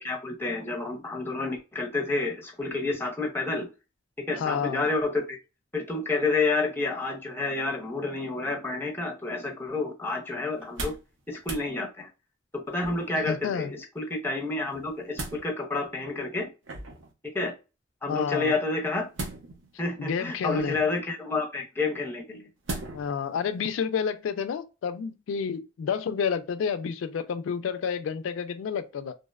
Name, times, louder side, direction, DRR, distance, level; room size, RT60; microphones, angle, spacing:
voice 1, 0.0-3.7 4.2-5.4 5.7-10.9 11.3-12.1 12.5-16.5 17.3-17.5 18.0-19.1 19.8-22.5, left 3 dB, 10° left, 0.5 m, -29 dB
voice 2, 4.4-4.8 13.2-13.7 18.1-18.5 20.0-20.8 22.9-29.1, left 6 dB, 85° left, 0.3 m, -30 dB
sound 1, 10.6-11.1 11.4-11.7 12.8-13.3 14.7-15.4 16.6-17.1 19.1-19.8 20.5-21.0 22.7-23.1 23.6-23.7, right 2 dB, 75° right, 0.6 m, -37 dB
2.7 x 2.0 x 2.3 m
head